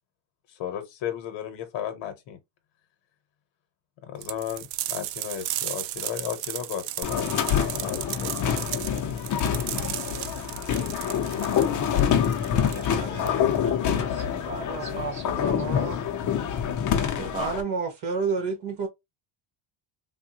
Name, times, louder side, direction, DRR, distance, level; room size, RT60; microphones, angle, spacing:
voice 1, 0.5-2.4 4.0-8.3, left 10 dB, 70° left, 0.9 m, -35 dB
sound 1, 4.2-13.6, right 14 dB, 80° right, 0.5 m, -35 dB
sound 2, 7.0-17.6, left 8 dB, 40° left, 0.6 m, -26 dB
voice 2, 12.4-15.5 17.2-17.6, right 2 dB, 15° right, 0.4 m, -39 dB
voice 3, 14.7-16.0 17.3-18.9, right 4 dB, 60° right, 1.5 m, -30 dB
3.5 x 2.2 x 2.7 m
cardioid pair, 155°, 45 cm